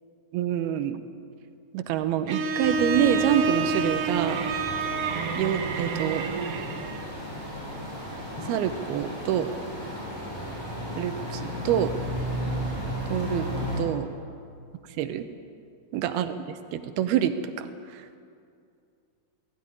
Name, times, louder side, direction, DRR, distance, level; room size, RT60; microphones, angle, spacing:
voice 1, 0.3-1.0 1.7-4.5 5.3-6.3 8.5-9.5 11.0-11.9 13.1-14.1 15.0-15.3 15.9-18.2, right 10 dB, 90° right, 9 dB, 2.9 m, -27 dB
Bowed string instrument, 2.3-7.1, right 4 dB, 60° right, 1.5 m, -28 dB
sound 1, 2.6-13.8, equal, 5° left, 7.6 m, -34 dB
18.0 x 16.5 x 10.0 m, 2.4 s
omnidirectional pair, 4.4 m